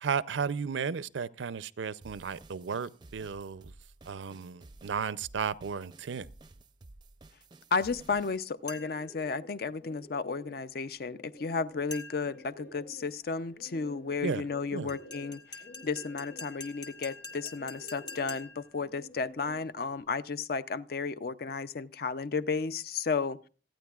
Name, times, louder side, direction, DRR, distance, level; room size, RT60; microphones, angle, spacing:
voice 1, 0.0-3.7 4.1-6.3 14.2-14.4 14.7-14.9, right 6 dB, 80° right, 0.5 m, -34 dB
sound 1, 2.0-8.4, right 2 dB, 25° right, 0.5 m, -54 dB
voice 2, 7.7-23.4, left 4 dB, 50° left, 0.4 m, -33 dB
Bird, 8.4-20.0, left 1 dB, 80° left, 2.9 m, -52 dB
sound 2, 8.7-9.1 11.9-12.4 14.9-18.7, left 3 dB, 20° left, 1.1 m, -45 dB
26.5 x 9.3 x 2.4 m
head